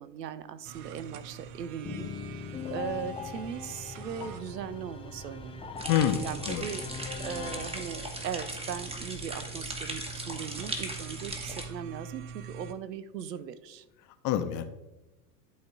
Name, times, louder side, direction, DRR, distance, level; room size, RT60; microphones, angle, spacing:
voice 1, 0.0-2.1 2.4-2.5 2.7-5.7 6.2-6.8 7.2-13.8, right 8 dB, 80° right, 14 dB, 0.7 m, -39 dB
sound 1, 0.6-12.7, right 6 dB, 40° right, 0.7 m, -46 dB
sound 2, 1.8-8.6, left 6 dB, 10° left, 0.4 m, -40 dB
sound 3, 5.8-11.6, right 1 dB, 10° right, 1.4 m, -38 dB
voice 2, 5.9-6.7 14.0-14.6, left 10 dB, 40° left, 8 dB, 0.9 m, -28 dB
11.0 x 4.1 x 4.0 m, 0.99 s
figure-of-eight pair, 90°, 49 cm